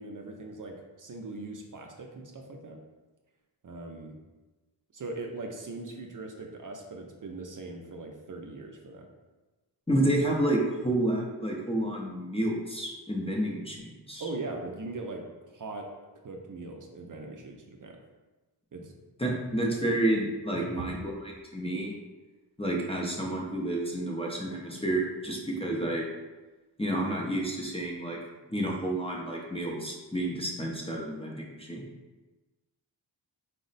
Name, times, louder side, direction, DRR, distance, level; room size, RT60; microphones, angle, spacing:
voice 1, 0.0-2.8 3.6-4.2 4.9-9.1 14.2-15.9 16.2-18.0 18.7-18.9 19.2-19.4 20.5-20.9, right 2 dB, 50° right, 2 dB, 0.5 m, -40 dB
voice 2, 9.9-14.2 19.2-21.1 21.5-21.9 22.6-26.1 26.8-28.2 28.5-31.8, right 1 dB, 15° left, -2 dB, 0.5 m, -30 dB
4.2 x 2.0 x 3.9 m, 1.2 s
wide cardioid pair, 95°, 43 cm